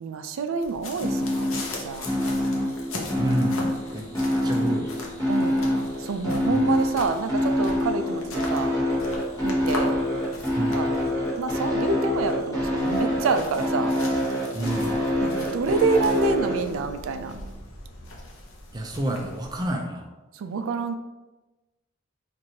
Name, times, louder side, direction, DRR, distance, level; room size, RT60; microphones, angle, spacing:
voice 1, 0.0-2.1 5.3-8.7 9.4-9.9 10.6-10.9 11.4-13.9 15.2-17.3 20.3-21.0, right 4 dB, 80° right, 8 dB, 0.3 m, -27 dB
sound 1, 0.6-19.7, left 2 dB, 80° left, 0.7 m, -40 dB
sound 2, 1.0-16.6, left 1 dB, 20° left, 1.0 m, -25 dB
sound 3, 2.1-17.4, right 2 dB, 40° right, 1.3 m, -47 dB
voice 2, 3.2-4.1 4.4-5.0 6.5-6.8 10.6-10.8 14.5-15.0 18.7-20.1, right 1 dB, 20° right, 2 dB, 0.4 m, -29 dB
4.5 x 2.6 x 2.8 m, 1.1 s
head